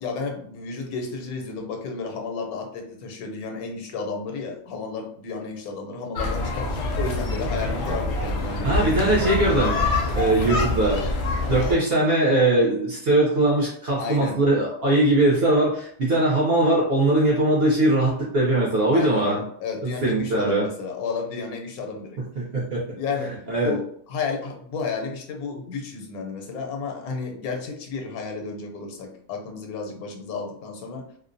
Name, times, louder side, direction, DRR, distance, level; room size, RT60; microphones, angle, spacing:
voice 1, 0.0-9.5 14.0-14.4 18.9-22.2 22.9-31.1, left 4 dB, 80° left, 3 dB, 1.1 m, -32 dB
sound 1, 6.2-11.7, left 2 dB, 65° left, 0.7 m, -25 dB
voice 2, 8.5-19.4 19.8-20.7 22.4-22.8 23.5-23.7, right 2 dB, 55° right, -4 dB, 0.7 m, -21 dB
2.5 x 2.0 x 2.5 m, 0.62 s
omnidirectional pair, 1.5 m